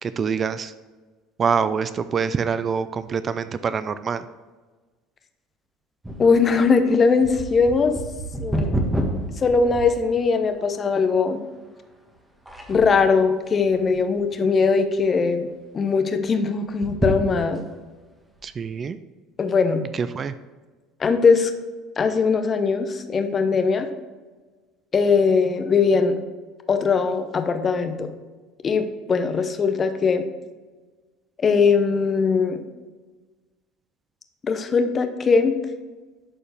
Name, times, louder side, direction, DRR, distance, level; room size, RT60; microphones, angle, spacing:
voice 1, 0.0-0.7 1.4-4.3 18.4-19.0 19.9-20.3, right 6 dB, 35° right, 13 dB, 0.3 m, -25 dB
sound 1, 6.0-10.5 11.1-11.2 11.9-12.1 12.5-13.1 13.6-14.3 14.7-14.8 15.1-15.2 16.7-17.8 18.4-18.5, right 1 dB, 10° right, 1.5 m, -28 dB
voice 2, 6.2-8.0 8.4-8.8 9.4-11.4 12.7-15.5 15.7-17.6 19.4-19.8 21.0-21.5 22.0-23.9 24.9-26.2 26.7-28.1 28.6-30.2 31.4-32.6 34.4-35.5, left 5 dB, 35° left, 7 dB, 0.8 m, -20 dB
11.0 x 4.4 x 3.4 m, 1.3 s
hypercardioid pair, 70°, 0 cm